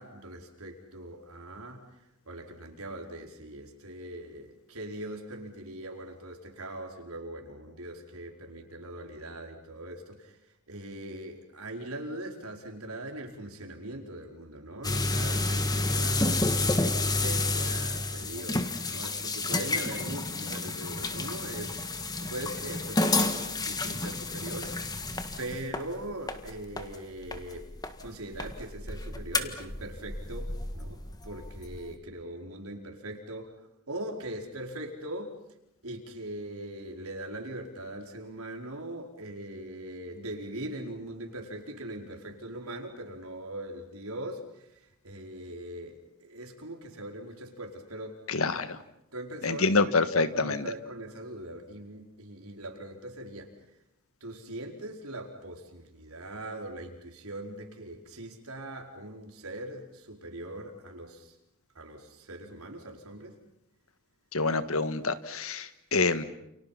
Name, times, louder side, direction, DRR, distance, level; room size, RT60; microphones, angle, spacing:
voice 1, 0.0-27.7 28.0-33.6 33.9-35.4 35.8-48.2 49.1-49.7 50.1-53.5 54.2-61.3 61.7-63.4, right 1 dB, 85° right, 2 dB, 4.8 m, -41 dB
sound 1, 14.8-28.1 28.3-31.9, left 2 dB, 20° left, 1.7 m, -30 dB
voice 2, 48.3-48.8 49.4-50.6 64.3-66.2, left 3 dB, 75° left, 12 dB, 1.6 m, -26 dB
29.5 x 29.0 x 5.9 m, 0.80 s
head